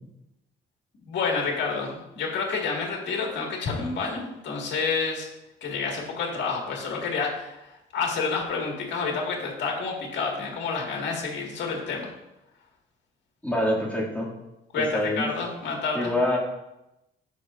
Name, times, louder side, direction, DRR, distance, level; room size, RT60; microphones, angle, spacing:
voice 1, 1.0-5.3 5.6-12.1 14.7-16.1, left 4 dB, 65° left, 0 dB, 1.9 m, -29 dB
voice 2, 13.4-14.3 14.8-15.3 15.9-16.4, left 1 dB, 5° left, -6 dB, 2.3 m, -25 dB
12.5 x 4.9 x 2.5 m, 0.91 s
cardioid pair, 90°, 20 cm